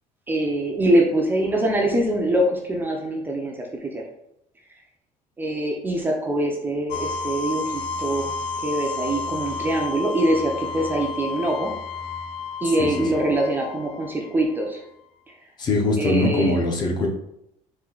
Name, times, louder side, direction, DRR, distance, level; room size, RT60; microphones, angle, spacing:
voice 1, 0.3-4.0 5.4-8.3 8.6-11.7 12.6-14.8 15.3-15.4 16.0-16.7, right 1 dB, 15° right, 0 dB, 0.5 m, -24 dB
sound 1, 6.9-14.7, left 4 dB, 65° left, 0.5 m, -31 dB
voice 2, 15.6-17.1, left 2 dB, 30° left, 1 dB, 0.7 m, -22 dB
4.3 x 2.7 x 3.8 m, 0.79 s
cardioid pair, 170°, 14 cm